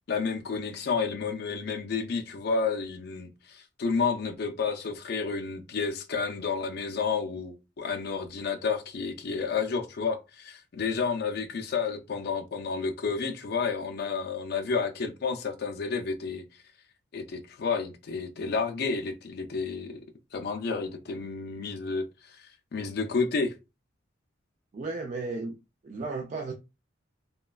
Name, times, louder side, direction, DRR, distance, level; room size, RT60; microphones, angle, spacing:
voice 1, 0.1-16.4 17.1-20.0 20.3-23.5, left 5 dB, 55° left, 0.4 m, -31 dB
voice 2, 24.7-25.6 25.8-26.5, right 3 dB, 40° right, 0.3 m, -34 dB
3.0 x 2.2 x 2.3 m
head